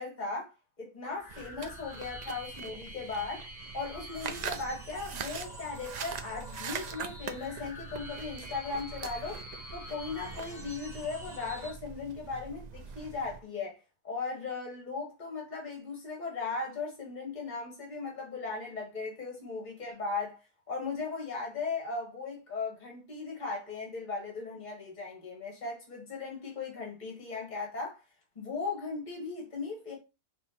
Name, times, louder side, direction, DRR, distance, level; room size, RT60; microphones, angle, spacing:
voice 1, 0.0-3.4 3.7-9.4 9.7-20.4 20.7-28.0 28.3-30.0, left 4 dB, 40° left, 1.5 m, -37 dB
sound 1, 1.0-11.7, equal, 15° left, 2.7 m, -47 dB
sound 2, 1.3-13.4, right 6 dB, 60° right, 0.4 m, -43 dB
5.3 x 3.0 x 2.9 m
omnidirectional pair, 1.2 m